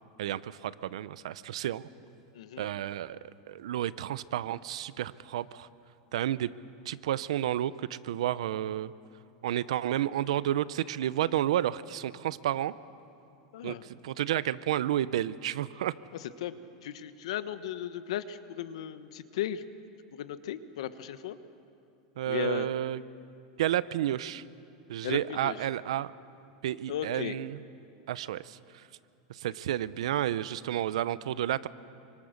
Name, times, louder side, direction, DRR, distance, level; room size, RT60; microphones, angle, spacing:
voice 1, 0.2-1.9 2.6-3.2 3.5-5.7 6.1-6.5 6.9-8.9 9.4-12.7 13.6-15.9 22.2-23.0 23.6-24.4 24.9-26.1 26.6-27.6 28.1-28.6 29.3-31.7, right 12 dB, 85° right, 17 dB, 0.8 m, -31 dB
voice 2, 2.3-2.7 13.5-13.9 16.4-16.5 16.8-19.6 20.1-21.4 22.3-22.7 25.0-25.6 26.9-27.3, left 10 dB, 75° left, 12 dB, 1.2 m, -36 dB
27.5 x 25.0 x 6.6 m, 2.6 s
supercardioid pair, 155°, 3 cm